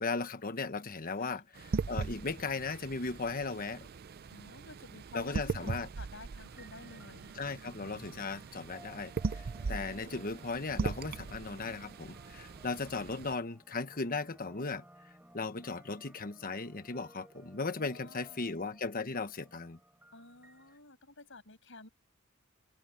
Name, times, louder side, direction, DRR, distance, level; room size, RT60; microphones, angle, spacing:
voice 1, 0.0-3.9 5.1-5.9 7.4-14.8 15.3-19.8, left 4 dB, 45° left, 1.2 m, -37 dB
sound 1, 1.5-13.3, right 4 dB, 45° right, 0.5 m, -40 dB
voice 2, 4.3-7.3 9.5-10.3 17.8-18.6 20.1-21.9, left 2 dB, 65° left, 6.5 m, -52 dB
sound 2, 6.4-20.7, right 1 dB, 10° right, 4.7 m, -59 dB
head